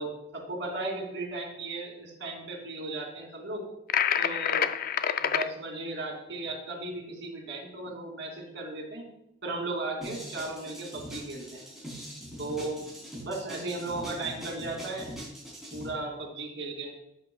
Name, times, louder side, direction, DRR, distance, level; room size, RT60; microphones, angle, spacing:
voice 1, 0.0-3.6 4.2-4.7 5.2-9.1 9.4-11.6 12.4-12.9 13.2-15.1 15.7-17.0, right 2 dB, 70° right, 0 dB, 2.7 m, -36 dB
sound 1, 3.9-5.5, left 8 dB, 50° left, 0.4 m, -27 dB
sound 2, 10.0-15.9, equal, ahead, 3.2 m, -42 dB
10.5 x 8.5 x 2.3 m, 0.85 s
head